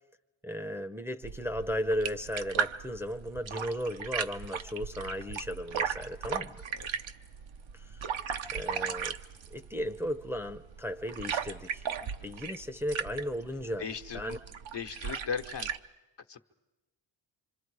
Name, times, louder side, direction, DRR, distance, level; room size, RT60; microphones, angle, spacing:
voice 1, 0.4-6.6 7.7-8.1 8.5-9.2 9.5-11.8 12.2-13.9 14.1-14.4, equal, 5° right, 6 dB, 0.8 m, -35 dB
sound 1, 1.2-15.8, right 7 dB, 70° right, 0.9 m, -37 dB
voice 2, 12.0-12.3 13.8-14.4 14.7-15.7 16.3-16.4, left 6 dB, 60° left, 4 dB, 1.3 m, -38 dB
26.0 x 25.5 x 4.8 m, 1.0 s
cardioid pair, 65°, 48 cm